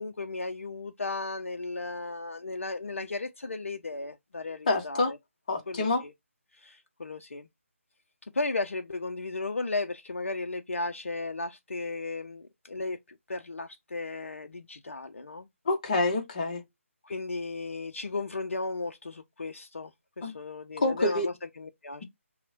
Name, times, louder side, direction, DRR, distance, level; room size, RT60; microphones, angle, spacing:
voice 1, 0.0-5.2 5.7-6.1 6.6-7.5 8.3-15.5 17.0-19.9 20.2-22.0, left 3 dB, 60° left, 0.4 m, -35 dB
voice 2, 4.7-5.1 5.5-6.0 15.7-16.6 20.2-20.3 20.8-21.3, left 2 dB, 30° left, 0.7 m, -27 dB
5.7 x 2.1 x 2.5 m
figure-of-eight pair, 150°, 8 cm